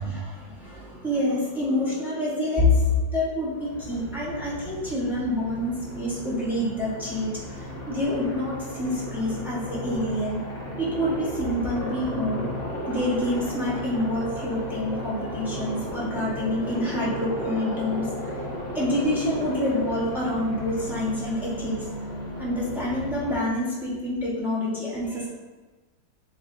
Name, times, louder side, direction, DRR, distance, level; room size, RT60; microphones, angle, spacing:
voice 1, 0.0-10.4 10.8-12.5 12.9-18.3 18.7-21.9 22.4-25.3, left 1 dB, ahead, -6 dB, 0.4 m, -27 dB
Aircraft, 3.5-23.4, equal, 20° left, 0.8 m, -35 dB
7.2 x 2.6 x 2.6 m, 1.3 s
omnidirectional pair, 2.1 m